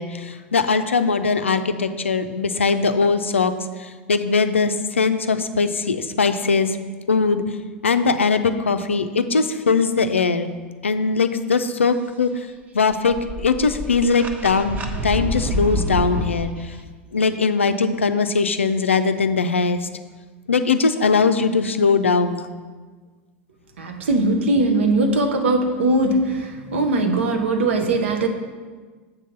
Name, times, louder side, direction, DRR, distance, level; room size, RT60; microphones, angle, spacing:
voice 1, 0.0-3.5 4.1-6.7 7.1-7.4 7.8-10.5 10.8-12.3 12.7-14.8 15.0-16.5 17.1-19.8 20.5-22.5, left 4 dB, 85° left, 10 dB, 0.4 m, -20 dB
sound 1, 13.1-16.5, equal, 25° right, 0.8 m, -27 dB
voice 2, 23.8-28.3, right 2 dB, 70° right, 4 dB, 0.9 m, -20 dB
7.3 x 3.8 x 6.5 m, 1.4 s
figure-of-eight pair, 85°, 7 cm